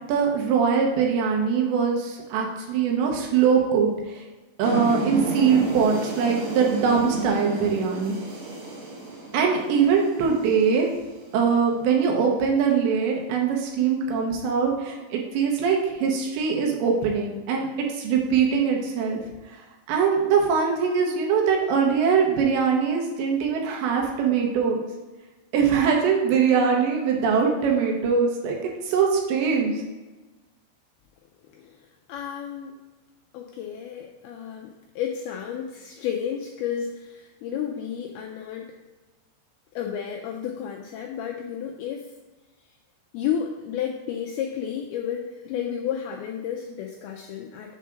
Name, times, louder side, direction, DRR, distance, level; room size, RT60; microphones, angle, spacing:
voice 1, 0.1-4.2 4.6-8.1 9.3-10.9 11.3-17.7 17.9-19.2 19.9-24.8 25.5-29.8, right 6 dB, 85° right, 0 dB, 3.3 m, -22 dB
sound 1, 4.6-11.6, right 2 dB, 65° right, 3.2 m, -32 dB
voice 2, 32.1-32.7 33.3-38.7 39.8-42.1 43.1-47.8, left 8 dB, 85° left, 1 dB, 2.2 m, -32 dB
7.4 x 3.6 x 5.8 m, 1.2 s
omnidirectional pair, 5.0 m